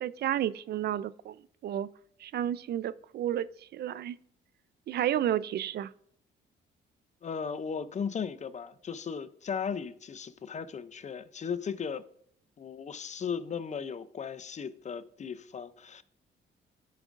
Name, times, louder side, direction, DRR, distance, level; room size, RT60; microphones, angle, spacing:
voice 1, 0.0-1.4 1.6-1.9 2.2-3.5 3.7-4.2 4.9-5.9, right 11 dB, 55° right, 0.4 m, -31 dB
voice 2, 7.2-12.0 12.6-16.0, left 6 dB, 35° left, 0.5 m, -36 dB
13.5 x 5.0 x 2.5 m
cardioid pair, 90°, 20 cm